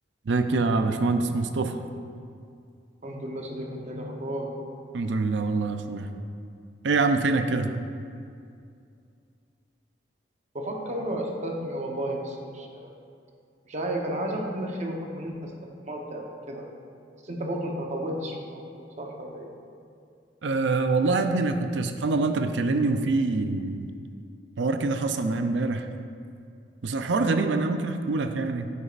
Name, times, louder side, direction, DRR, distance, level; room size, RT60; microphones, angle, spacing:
voice 1, 0.3-1.8 4.9-6.1 6.8-7.7 20.4-23.9 24.6-25.9 26.8-28.7, right 3 dB, 80° right, 8 dB, 0.5 m, -25 dB
voice 2, 3.0-4.5 10.5-12.9 13.6-15.5 15.8-16.7 17.2-19.5, right 1 dB, 40° right, 0 dB, 0.9 m, -33 dB
9.5 x 8.1 x 2.5 m, 2.4 s
head